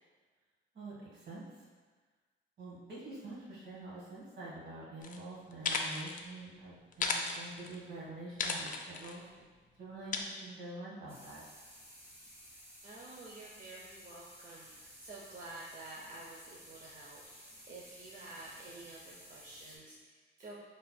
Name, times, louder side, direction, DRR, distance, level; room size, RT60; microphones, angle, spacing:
voice 1, 0.7-1.6 2.6-9.5 9.8-11.4, right 2 dB, 60° right, -5 dB, 1.4 m, -46 dB
sound 1, 5.0-5.2 5.5-6.2 6.9-7.8 8.4-9.2 10.1-10.2, left 4 dB, 40° left, 0.4 m, -35 dB
sound 2, 11.1-19.8, equal, 15° right, 1.2 m, -55 dB
voice 2, 12.8-20.6, right 2 dB, 45° right, -4 dB, 0.5 m, -50 dB
4.2 x 3.2 x 2.2 m, 1.4 s
cardioid pair, 90°, 20 cm